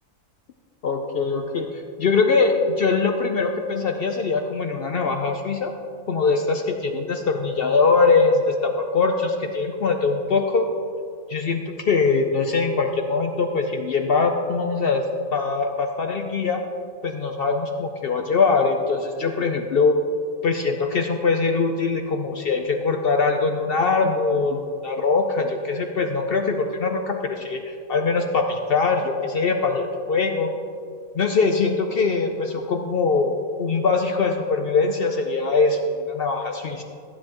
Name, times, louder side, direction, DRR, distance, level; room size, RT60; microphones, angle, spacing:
voice 1, 0.8-5.7 6.1-10.7 11.3-15.0 15.3-16.6 17.0-20.0 20.4-30.5 31.1-33.3 33.6-36.8, left 4 dB, 55° left, 4 dB, 0.7 m, -22 dB
15.0 x 9.7 x 2.9 m, 2.3 s
omnidirectional pair, 1.3 m